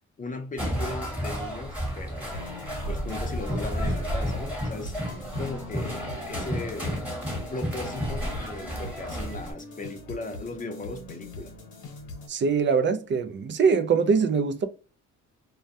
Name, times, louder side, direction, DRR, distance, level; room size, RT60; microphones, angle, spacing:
voice 1, 0.2-2.5 2.9-7.0 7.5-11.5, left 2 dB, 25° left, 0.6 m, -37 dB
sound 1, 0.6-9.5, equal, 5° right, 1.1 m, -32 dB
sound 2, 2.3-12.3, left 2 dB, 75° left, 1.0 m, -42 dB
voice 2, 12.3-14.7, right 5 dB, 40° right, 0.4 m, -23 dB
2.2 x 2.2 x 2.7 m
cardioid pair, 90°, 30 cm